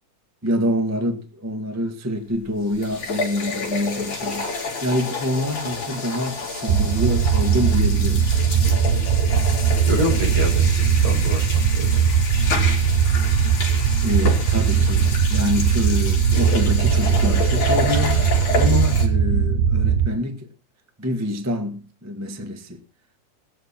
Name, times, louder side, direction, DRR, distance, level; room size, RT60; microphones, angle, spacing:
voice 1, 0.4-8.3 14.0-20.5 21.0-22.8, left 1 dB, 10° right, 0.7 m, -26 dB
sound 1, 2.3-2.4 2.7-19.1, left 3 dB, 70° left, 5.4 m, -29 dB
sound 2, 6.7-20.1, right 7 dB, 90° right, 2.5 m, -19 dB
voice 2, 9.9-12.1 12.3-12.7, equal, 55° right, 7.3 m, -28 dB
18.5 x 13.0 x 4.4 m
omnidirectional pair, 3.6 m